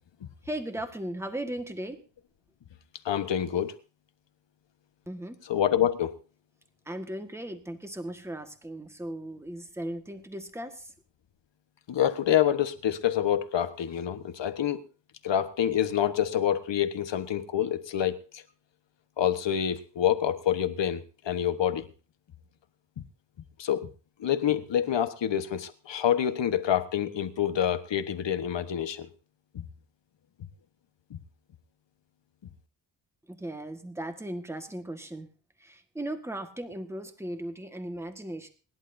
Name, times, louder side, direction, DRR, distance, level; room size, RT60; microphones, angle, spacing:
voice 1, 0.4-2.0 5.1-5.4 6.8-10.9 33.3-35.3 35.6-38.5, right 1 dB, 5° right, 6 dB, 1.6 m, -37 dB
voice 2, 3.0-3.7 5.5-6.1 11.9-14.8 15.2-18.4 19.2-21.9 23.6-23.9 24.2-29.1 31.1-31.2, left 10 dB, 80° left, 10 dB, 1.3 m, -27 dB
26.0 x 11.0 x 2.7 m, 0.36 s
wide cardioid pair, 115°, 43 cm